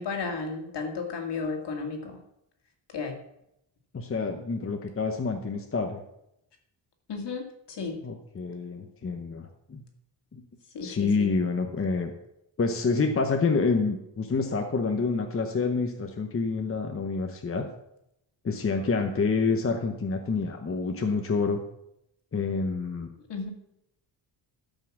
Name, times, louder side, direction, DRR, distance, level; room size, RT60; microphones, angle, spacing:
voice 1, 0.0-2.2 2.9-3.2 7.1-8.0 10.7-11.3 23.3-23.5, left 4 dB, 60° left, 3 dB, 2.3 m, -33 dB
voice 2, 3.9-6.0 8.0-9.8 10.3-10.4 10.8-12.1 12.6-17.7 18.4-21.6 22.3-23.1, left 4 dB, 30° left, 4 dB, 0.9 m, -28 dB
13.0 x 5.6 x 7.2 m, 0.81 s
wide cardioid pair, 175°, 45 cm